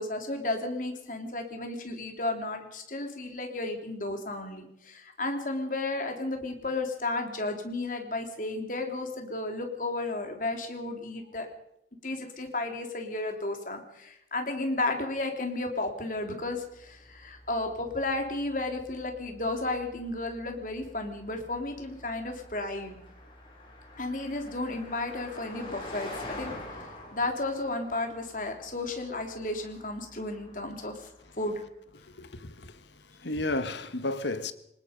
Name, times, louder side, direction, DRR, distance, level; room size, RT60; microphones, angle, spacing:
voice 1, 0.0-11.5 12.0-23.0 24.0-26.5 26.8-31.1 31.4-31.6, left 2 dB, 45° left, 3.4 m, -33 dB
Car passing by, 15.9-31.6, left 1 dB, 30° left, 6.3 m, -47 dB
voice 2, 31.9-34.5, left 2 dB, 75° left, 1.4 m, -33 dB
25.0 x 19.5 x 5.3 m
head